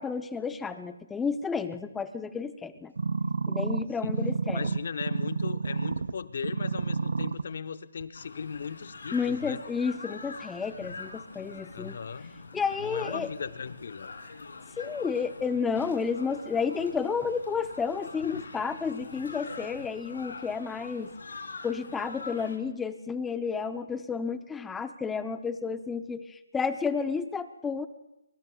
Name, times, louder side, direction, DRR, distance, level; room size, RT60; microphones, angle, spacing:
voice 1, 0.0-2.9 3.5-4.7 9.1-12.0 12.5-13.3 14.8-21.1 21.6-27.9, left 5 dB, 5° left, 11 dB, 0.6 m, -31 dB
sound 1, 3.0-6.1 6.4-7.4 8.0-8.1, right 4 dB, 75° right, 0.6 m, -29 dB
voice 2, 4.5-9.6 11.7-12.3 12.8-14.1, left 6 dB, 60° left, 11 dB, 0.9 m, -38 dB
sound 2, 8.1-22.6, left 4 dB, 80° left, 2.8 m, -44 dB
24.0 x 23.5 x 2.3 m, 0.93 s
hypercardioid pair, 155°, 0 cm